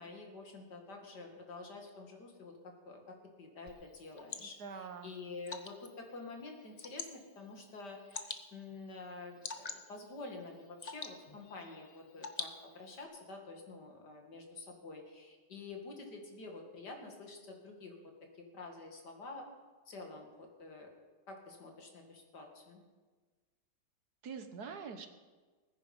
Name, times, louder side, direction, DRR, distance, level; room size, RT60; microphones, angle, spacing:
voice 1, 0.0-18.0 18.3-19.5 19.9-20.9 21.3-22.8, left 3 dB, 65° left, 3 dB, 2.8 m, -48 dB
Water / Drip, 3.7-13.0, left 4 dB, 35° left, 0.6 m, -48 dB
voice 2, 4.4-5.1 24.2-25.1, right 5 dB, 65° right, 8 dB, 1.6 m, -45 dB
20.0 x 9.9 x 5.4 m, 1.3 s
omnidirectional pair, 1.9 m